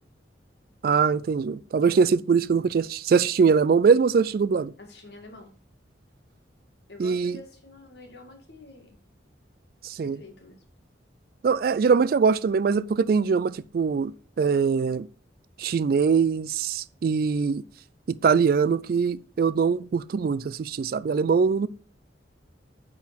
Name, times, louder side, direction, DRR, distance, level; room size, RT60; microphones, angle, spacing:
voice 1, 0.8-4.7 7.0-7.4 9.8-10.2 11.4-14.1 14.4-15.1 15.6-17.6 18.1-21.7, right 5 dB, 50° right, 0.3 m, -22 dB
voice 2, 4.8-5.5 6.9-9.0 10.0-10.6, left 2 dB, 60° left, 2.0 m, -47 dB
8.9 x 3.8 x 5.8 m
head